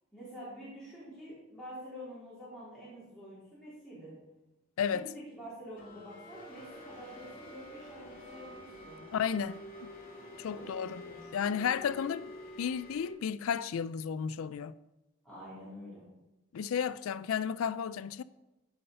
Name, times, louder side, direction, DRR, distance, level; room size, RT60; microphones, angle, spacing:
voice 1, 0.1-4.1 4.9-9.0 10.5-11.6 15.2-16.1, equal, 5° left, 3.8 m, -47 dB
voice 2, 4.8-5.1 9.1-9.9 10.4-11.0 11.3-12.3 12.6-14.7 16.5-18.2, left 7 dB, 70° left, 0.4 m, -33 dB
sound 1, 5.8-13.1, left 1 dB, 40° left, 2.4 m, -48 dB
15.0 x 5.6 x 5.4 m
head